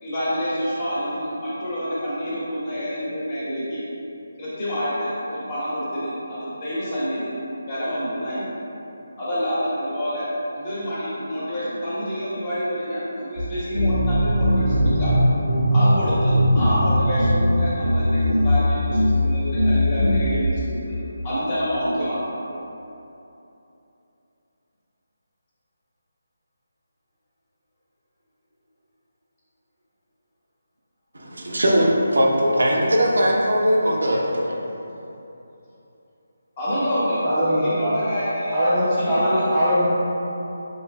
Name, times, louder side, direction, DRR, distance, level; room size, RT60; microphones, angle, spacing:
voice 1, 0.0-3.8 4.4-7.3 7.6-8.5 9.2-10.3 10.5-15.1 15.7-21.0 21.2-22.2 36.6-38.5 38.9-39.5, equal, 30° left, -10 dB, 1.2 m, -27 dB
sound 1, 13.4-13.5 13.7-18.6 18.9-19.2 19.5-20.2, equal, 80° left, 0.9 m, -19 dB
voice 2, 31.1-34.6, equal, 60° right, -3 dB, 0.6 m, -20 dB
voice 3, 37.2-37.9 38.5-39.9, equal, 10° right, -15 dB, 0.6 m, -21 dB
5.1 x 3.1 x 2.2 m, 2.9 s
figure-of-eight pair, 150°, 0 cm